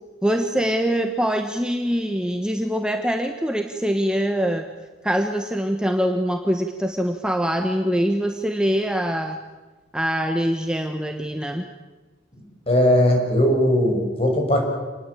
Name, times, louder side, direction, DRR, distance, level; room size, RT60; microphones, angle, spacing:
voice 1, 0.2-4.6 5.0-9.4 9.9-11.6, equal, 5° right, 4 dB, 1.3 m, -23 dB
voice 2, 12.7-14.6, equal, 35° left, 2 dB, 6.6 m, -18 dB
27.5 x 20.0 x 8.6 m, 1.2 s
head